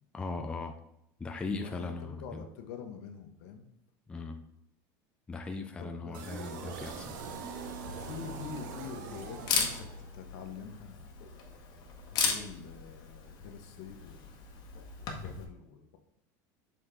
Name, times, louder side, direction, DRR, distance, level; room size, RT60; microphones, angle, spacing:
voice 1, 0.1-0.7 1.2-2.4 4.1-4.4 5.3-7.2, left 3 dB, 10° left, 5 dB, 0.4 m, -38 dB
voice 2, 1.5-3.6 5.8-6.4 8.0-11.1 12.1-14.5 15.0-16.0, left 6 dB, 70° left, 6 dB, 1.0 m, -46 dB
sound 1, 6.1-10.4, right 5 dB, 85° right, 0.9 m, -43 dB
Camera, 7.1-15.4, left 5 dB, 45° left, 1.2 m, -37 dB
Marimba xylophone / Wood, 7.4-9.6, right 12 dB, 25° right, 0.7 m, -50 dB
6.6 x 4.1 x 3.8 m, 0.81 s
supercardioid pair, 150°, 10 cm